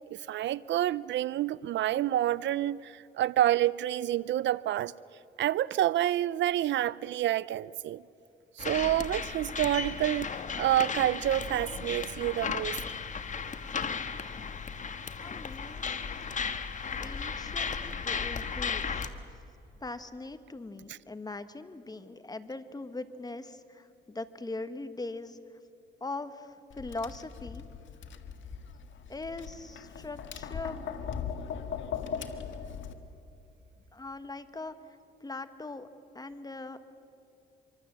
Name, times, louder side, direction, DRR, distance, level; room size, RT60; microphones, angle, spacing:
voice 1, 0.1-4.9 5.4-8.0 8.6-12.8 20.9-21.0, right 13 dB, 65° right, 0.5 m, -28 dB
sound 1, 8.6-19.1, left 6 dB, 40° left, 1.4 m, -35 dB
voice 2, 15.2-15.8 17.0-19.1 19.8-25.4 26.0-27.6 29.1-31.3 33.9-34.8 35.2-35.9 36.1-36.8, left 2 dB, 20° left, 1.5 m, -41 dB
Tap, 26.7-32.9, left 7 dB, 75° left, 1.7 m, -39 dB
26.0 x 24.0 x 7.5 m
cardioid pair, 90°, 20 cm